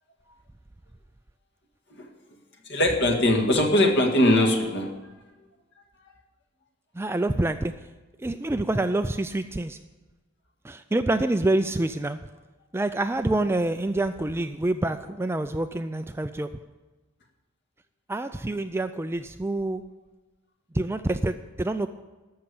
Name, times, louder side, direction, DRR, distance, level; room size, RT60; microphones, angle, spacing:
voice 1, 2.7-4.9, left 1 dB, 50° left, 2 dB, 1.9 m, -21 dB
voice 2, 6.9-7.7 8.2-9.8 10.6-12.2 12.7-16.5 18.1-19.8 20.7-21.9, right 2 dB, 10° right, 9 dB, 0.3 m, -27 dB
13.5 x 6.5 x 8.6 m, 1.2 s
head